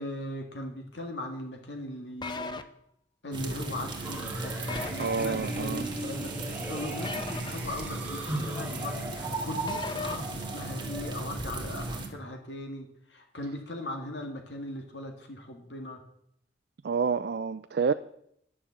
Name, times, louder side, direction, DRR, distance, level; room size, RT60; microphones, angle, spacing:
voice 1, 0.0-2.6 3.2-16.0, left 1 dB, 70° left, 1.9 m, -39 dB
sound 1, 2.2-2.6 4.7-5.1 7.0-7.5 9.7-10.2, left 4 dB, 25° left, 0.7 m, -36 dB
sound 2, 3.3-12.1, right 2 dB, 25° right, 1.8 m, -36 dB
sound 3, 4.0-11.1, right 1 dB, 10° right, 1.7 m, -39 dB
voice 2, 5.0-5.9 16.8-17.9, right 5 dB, 60° right, 0.4 m, -28 dB
11.0 x 7.2 x 7.4 m
head